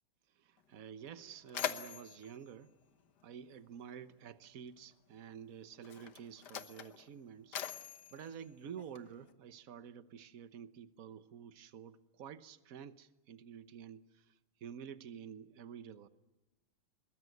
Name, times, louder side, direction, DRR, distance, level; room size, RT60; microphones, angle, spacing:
voice 1, 0.3-2.7 3.2-7.6 8.1-14.3 14.6-16.1, right 8 dB, 50° right, 13 dB, 1.2 m, -50 dB
Mechanisms, 0.6-0.7 1.0-3.8 4.8-4.9 5.7-9.3, left 9 dB, 55° left, 1.6 m, -44 dB
23.5 x 21.5 x 9.4 m, 1.1 s
omnidirectional pair, 2.3 m